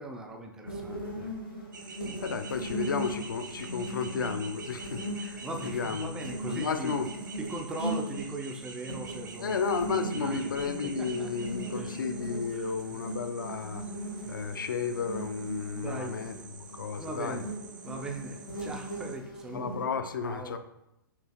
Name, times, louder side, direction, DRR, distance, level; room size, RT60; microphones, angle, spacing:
voice 1, 0.0-1.4 1.9-2.0 5.4-7.0 7.4-9.6 10.1-12.0 12.5-13.0 14.3-14.4 15.8-16.3 17.0-17.5 17.8-19.7 20.2-20.6, right 2 dB, 5° right, 0.3 m, -40 dB
sound 1, 0.7-19.8, right 1 dB, 80° left, 1.6 m, -39 dB
sound 2, 1.7-19.2, right 5 dB, 60° right, 0.6 m, -47 dB
voice 2, 2.2-6.1 6.5-7.1 9.4-13.8 14.3-17.4 19.5-20.6, left 5 dB, 65° left, 0.5 m, -33 dB
5.8 x 3.0 x 2.8 m
figure-of-eight pair, 115°, 12 cm